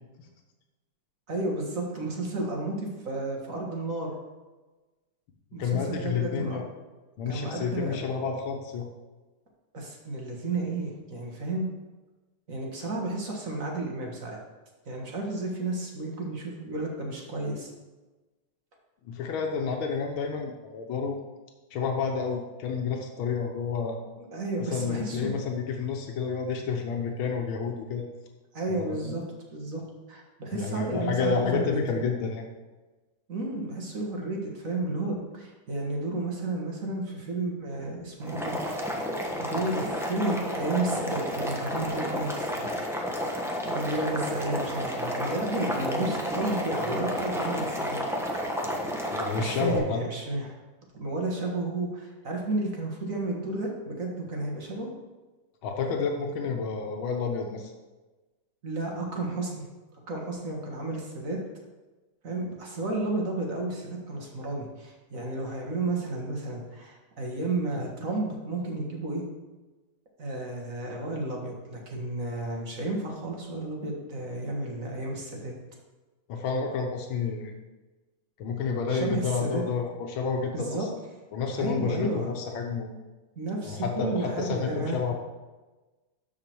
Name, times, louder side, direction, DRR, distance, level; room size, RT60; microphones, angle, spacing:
voice 1, 1.3-4.1 5.5-6.6 7.3-8.0 9.7-11.7 12.5-14.4 14.9-17.7 24.3-25.4 28.5-29.2 29.5-29.8 30.1-31.8 33.3-38.6 39.4-42.5 43.7-48.0 49.4-50.5 50.9-54.9 58.6-59.5 60.1-61.4 62.2-69.2 70.2-75.5 78.9-79.6 80.5-80.9 81.5-82.3 83.4-85.0, right 2 dB, 45° right, -1 dB, 1.9 m, -32 dB
voice 2, 5.6-6.6 7.2-8.9 19.1-21.2 21.7-24.0 24.7-28.1 28.7-29.1 30.5-32.4 49.1-50.0 55.6-57.7 76.3-77.5 78.4-80.9 81.3-82.9 83.7-85.1, left 5 dB, 90° left, 2 dB, 1.7 m, -30 dB
Boiling, 38.2-49.8, equal, ahead, 0.6 m, -31 dB
13.0 x 4.8 x 4.6 m, 1.2 s
omnidirectional pair, 2.2 m